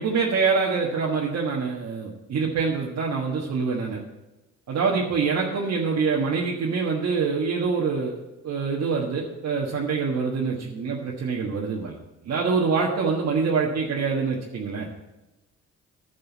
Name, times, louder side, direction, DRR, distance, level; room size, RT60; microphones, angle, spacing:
voice 1, 0.0-4.0 4.7-12.0 12.2-14.9, right 5 dB, 60° right, -3 dB, 1.5 m, -25 dB
11.0 x 5.4 x 8.3 m, 1.0 s
cardioid pair, 90°, 30 cm